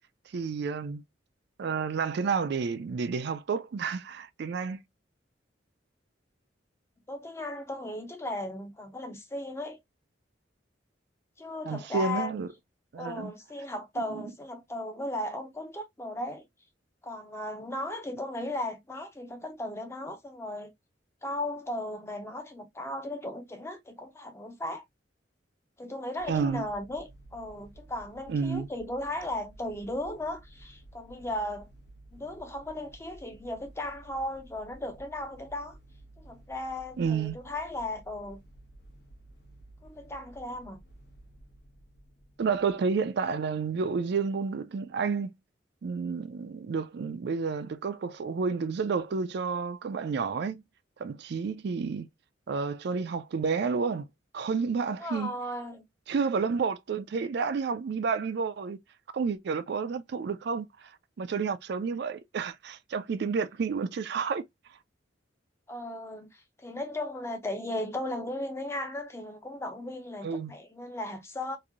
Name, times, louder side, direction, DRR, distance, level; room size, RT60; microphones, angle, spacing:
voice 1, 0.3-1.0 1.6-4.8 11.7-12.5 12.9-13.3 14.1-14.2 26.3-26.6 28.3-28.7 37.0-37.4 42.4-45.3 45.8-50.6 51.0-52.1 52.5-54.1 54.3-55.3 56.1-58.8 59.1-64.4 70.2-70.5, right 5 dB, 60° right, 0.4 m, -30 dB
voice 2, 7.1-9.8 11.4-12.3 12.9-16.5 17.0-20.7 21.2-24.8 25.8-31.7 32.1-35.8 36.2-38.4 39.8-40.8 55.0-55.8 65.7-71.6, left 1 dB, 15° left, 0.5 m, -36 dB
sound 1, 26.2-42.7, right 1 dB, 60° left, 0.9 m, -54 dB
3.0 x 2.5 x 2.4 m
head